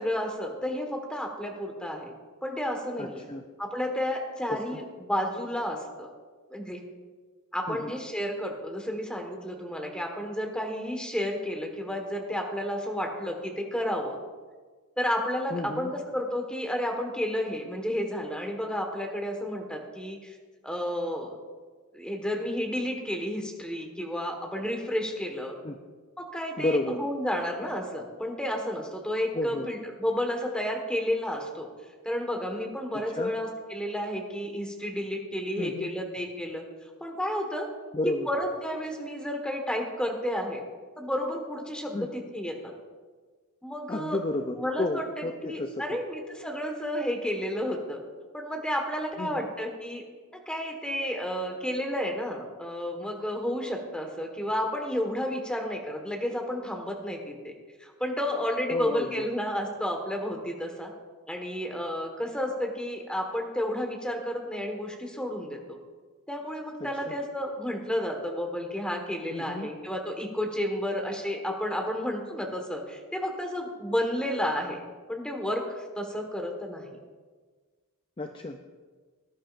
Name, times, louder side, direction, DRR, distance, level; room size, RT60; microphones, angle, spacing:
voice 1, 0.0-2.1 2.4-3.2 3.6-6.1 6.5-6.8 7.5-14.2 15.0-20.3 20.6-21.3 21.9-25.6 26.2-31.7 32.0-36.6 37.0-37.7 38.3-40.6 41.0-42.5 43.6-44.2 44.6-48.0 48.3-50.0 50.3-57.5 57.8-60.9 61.3-65.8 66.3-74.8 75.1-76.9, equal, 5° left, 2 dB, 1.4 m, -31 dB
voice 2, 3.0-3.4 4.5-4.8 7.7-7.9 15.5-15.9 25.6-25.8 26.6-27.0 29.3-29.7 32.9-33.4 35.6-36.0 37.9-38.3 41.9-42.1 43.9-45.8 49.2-49.4 58.7-59.3 66.8-67.2 69.3-69.7 78.2-78.6, left 2 dB, 25° left, 5 dB, 0.5 m, -32 dB
18.5 x 11.0 x 2.5 m, 1.4 s
head